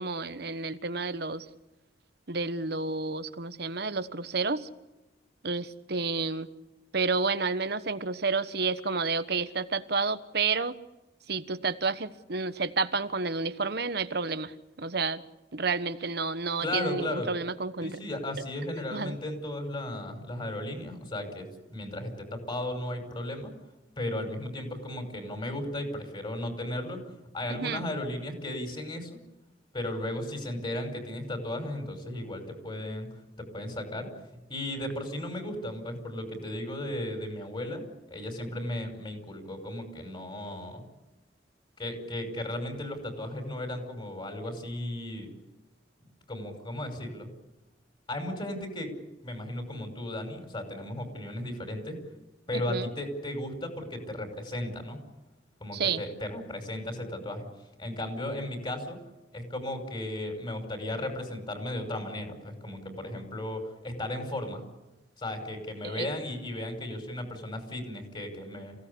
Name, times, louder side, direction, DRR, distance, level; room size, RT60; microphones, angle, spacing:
voice 1, 0.0-1.4 2.3-4.7 5.4-6.5 6.9-10.7 11.3-15.2 15.5-18.0 18.9-19.2 27.5-27.8 52.7-52.9 55.7-56.0 65.8-66.1, right 4 dB, 60° right, 12 dB, 1.2 m, -30 dB
voice 2, 16.6-17.3 17.8-23.5 24.0-27.0 27.3-29.1 29.7-33.1 33.4-34.1 34.5-37.8 38.1-40.8 41.8-45.3 46.3-47.3 48.1-48.9 49.2-52.0 52.5-55.0 55.6-57.5 57.8-59.0 59.3-64.6 65.2-68.8, left 1 dB, 30° left, 5 dB, 5.5 m, -35 dB
28.0 x 17.0 x 8.5 m, 1.0 s
head